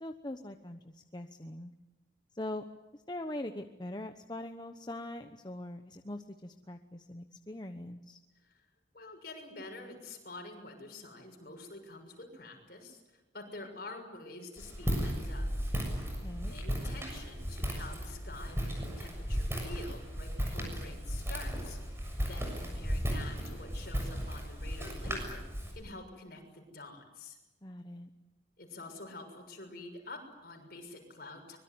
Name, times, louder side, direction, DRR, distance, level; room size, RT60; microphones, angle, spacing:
voice 1, 0.0-1.7 2.3-2.6 2.9-8.2 16.2-16.5 27.6-28.1, left 1 dB, 25° left, 6 dB, 1.0 m, -42 dB
voice 2, 8.9-15.5 16.5-25.4 25.7-27.4 28.6-31.6, left 2 dB, 55° left, 3 dB, 6.6 m, -47 dB
Walk footsteps, 14.6-25.7, equal, 15° right, 6.9 m, -35 dB
24.5 x 22.5 x 9.6 m, 1.1 s
head